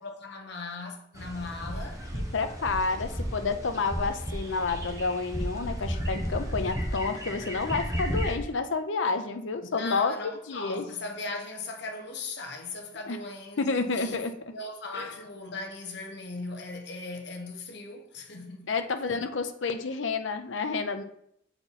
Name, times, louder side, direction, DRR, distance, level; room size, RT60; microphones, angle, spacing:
voice 1, 0.0-2.0 9.7-14.2 14.5-18.7, left 3 dB, 60° left, 1.1 m, -38 dB
sound 1, 1.1-8.4, equal, 15° right, 1.1 m, -33 dB
voice 2, 2.1-10.8 13.0-13.2 13.6-14.3 14.9-15.1 18.7-21.0, left 4 dB, 75° left, 0.6 m, -30 dB
6.9 x 4.4 x 4.1 m
head